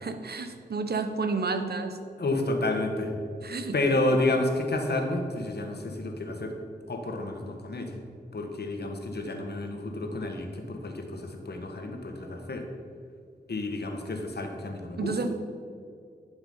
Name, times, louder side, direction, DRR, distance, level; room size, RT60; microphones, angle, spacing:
voice 1, 0.0-2.0 3.4-3.8 15.0-15.3, right 4 dB, 60° right, 8 dB, 1.0 m, -30 dB
voice 2, 2.2-3.1 3.7-6.5 6.9-8.0 8.3-12.6 13.5-15.2, left 2 dB, 65° left, 3 dB, 1.7 m, -30 dB
11.0 x 7.2 x 5.7 m, 2.3 s
wide cardioid pair, 70°, 18 cm